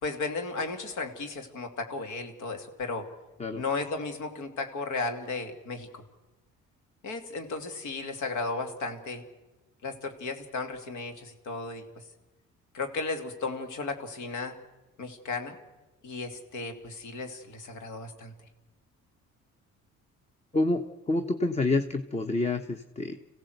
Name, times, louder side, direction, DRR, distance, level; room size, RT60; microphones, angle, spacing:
voice 1, 0.0-3.1 3.6-6.0 7.0-9.2 9.8-11.8 12.7-14.6 15.0-15.6 16.0-18.3, left 3 dB, 85° left, 6 dB, 2.7 m, -35 dB
voice 2, 20.5-23.2, left 2 dB, 20° left, 9 dB, 1.0 m, -28 dB
26.5 x 16.5 x 8.0 m, 1.1 s
cardioid pair, 90°, 30 cm